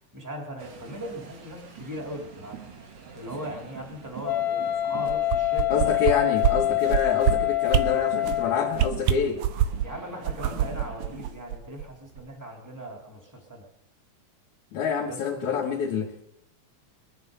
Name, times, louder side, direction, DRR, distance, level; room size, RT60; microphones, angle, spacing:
voice 1, 0.0-2.6 3.1-6.6 9.8-13.7 15.1-15.6, equal, 5° right, 1 dB, 3.2 m, -39 dB
sound 1, 0.6-11.3, right 7 dB, 55° right, 2.8 m, -44 dB
Wind instrument woodwind instrument, 4.2-8.9, left 14 dB, 40° left, 1.9 m, -26 dB
sound 2, 5.1-6.1 6.4-6.5 6.9-7.3 7.7-7.8 8.2-8.4 8.7-9.9 10.2-11.8 12.2-12.3, right 11 dB, 80° right, 2.2 m, -24 dB
voice 2, 5.7-9.4 14.7-16.3, left 6 dB, 75° left, -2 dB, 2.9 m, -27 dB
22.0 x 9.5 x 6.9 m, 0.78 s
omnidirectional pair, 3.4 m